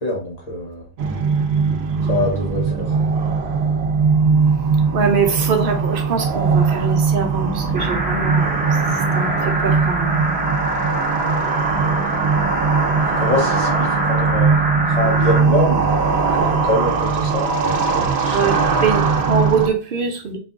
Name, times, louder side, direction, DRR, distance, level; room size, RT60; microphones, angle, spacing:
voice 1, 0.0-0.8 2.1-2.9 13.2-14.5 14.9-15.9 16.3-18.5, left 2 dB, 40° left, -1 dB, 1.1 m, -24 dB
sound 1, 1.0-19.7, right 5 dB, 85° right, 0.9 m, -20 dB
voice 2, 4.9-8.6 9.2-9.3 9.6-10.2 18.3-18.6 18.8-20.4, right 5 dB, 60° right, 4 dB, 0.8 m, -22 dB
sound 2, 7.7-15.4, right 1 dB, 10° right, 0.8 m, -24 dB
4.0 x 3.6 x 2.5 m, 0.38 s
omnidirectional pair, 1.0 m